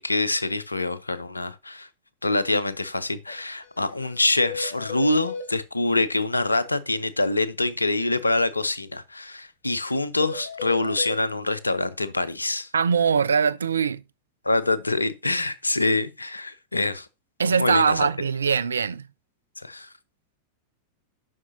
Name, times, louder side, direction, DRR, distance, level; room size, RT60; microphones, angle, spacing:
voice 1, 0.0-1.9 2.2-12.7 14.4-17.1 17.4-18.1 19.6-19.9, left 2 dB, 80° left, 0.6 m, -25 dB
sound 1, 3.3-3.4 3.6-3.8 4.0-4.1 4.5-5.5 10.2-11.2, left 4 dB, 55° left, 1.6 m, -35 dB
voice 2, 12.7-14.0 17.4-19.0, right 6 dB, 70° right, 0.3 m, -22 dB
11.0 x 5.8 x 2.6 m
figure-of-eight pair, 90°, 0 cm